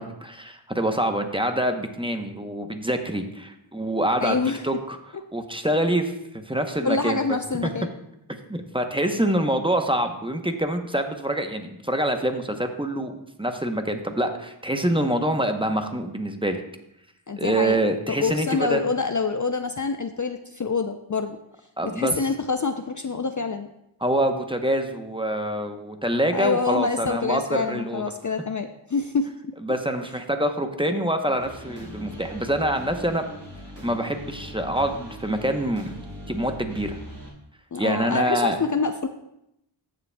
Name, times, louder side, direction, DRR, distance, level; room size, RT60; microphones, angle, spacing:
voice 1, 0.0-4.4 4.6-5.0 5.3-7.2 7.6-7.7 8.5-13.1 13.4-16.6 17.4-18.8 21.8-22.1 24.0-28.0 29.6-33.3 33.8-35.9 36.3-37.0 37.8-38.6, right 1 dB, 10° right, 5 dB, 0.8 m, -25 dB
voice 2, 4.2-4.6 6.8-7.9 17.3-17.8 18.1-21.4 21.8-23.7 26.3-29.5 37.7-39.1, left 4 dB, 40° left, 7 dB, 0.5 m, -26 dB
sound 1, 31.4-37.3, equal, 60° right, 3.5 m, -40 dB
14.0 x 6.8 x 2.2 m, 0.81 s
wide cardioid pair, 45°, 47 cm